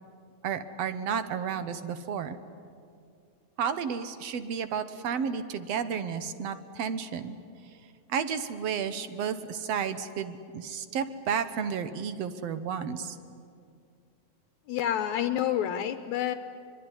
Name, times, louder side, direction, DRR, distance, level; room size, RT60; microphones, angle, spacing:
voice 1, 0.4-2.4 3.6-7.4 8.1-13.2, right 7 dB, 65° right, 10 dB, 2.0 m, -32 dB
voice 2, 14.7-16.3, left 10 dB, 75° left, 9 dB, 2.1 m, -28 dB
24.0 x 23.5 x 9.9 m, 2.3 s
omnidirectional pair, 3.5 m